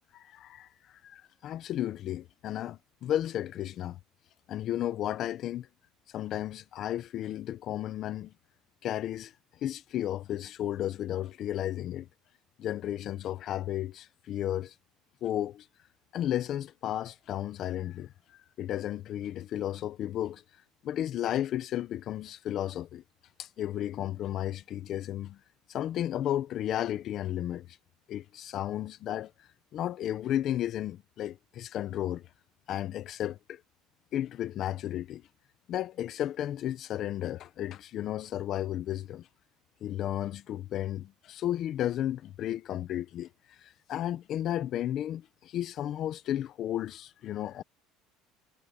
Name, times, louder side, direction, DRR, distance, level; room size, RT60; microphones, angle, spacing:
voice 1, 0.1-4.0 4.5-5.7 6.1-8.3 8.8-9.3 9.6-12.1 12.6-14.7 15.2-15.7 16.1-20.4 20.8-23.0 23.4-25.4 25.7-27.8 28.1-32.3 32.7-33.6 34.1-35.2 35.7-39.3 39.8-47.6, left 12 dB, 45° left, 1.1 m, -33 dB
cardioid pair, 140°, 0 cm